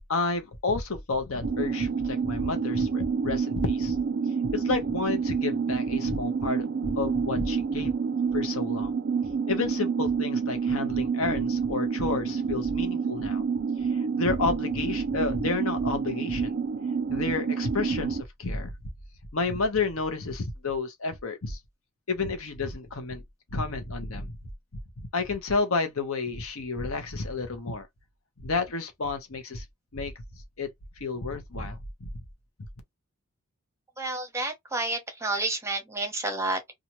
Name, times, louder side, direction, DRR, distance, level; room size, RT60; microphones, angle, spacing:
voice 1, 0.1-4.0 4.5-7.9 8.3-8.9 9.5-13.4 13.9-16.5 17.1-18.7 19.3-21.6 22.1-23.2 23.5-24.3 25.0-27.9 28.4-29.6 29.9-30.1 30.6-30.7 31.0-32.1, left 3 dB, 70° left, 0.9 m, -30 dB
sound 1, 1.4-18.2, right 5 dB, 50° right, 0.4 m, -28 dB
voice 2, 34.0-36.7, right 2 dB, 10° right, 0.8 m, -30 dB
2.8 x 2.4 x 2.9 m
head